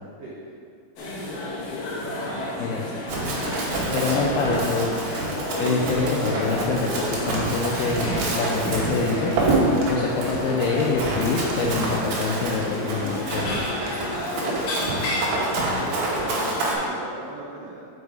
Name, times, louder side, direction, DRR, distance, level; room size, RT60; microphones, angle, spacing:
voice 1, 0.2-0.5 1.0-1.8 15.8-17.9, right 1 dB, 70° right, -7 dB, 1.5 m, -38 dB
sound 1, 1.0-16.9, left 2 dB, 65° left, 2.9 m, -31 dB
voice 2, 2.6-3.0 3.9-4.9 5.6-9.3 9.9-13.6, left 4 dB, 85° left, -2 dB, 2.5 m, -26 dB
Run, 3.1-16.7, right 2 dB, 85° right, 3.3 m, -27 dB
6.6 x 5.3 x 4.8 m, 2.3 s
omnidirectional pair, 4.5 m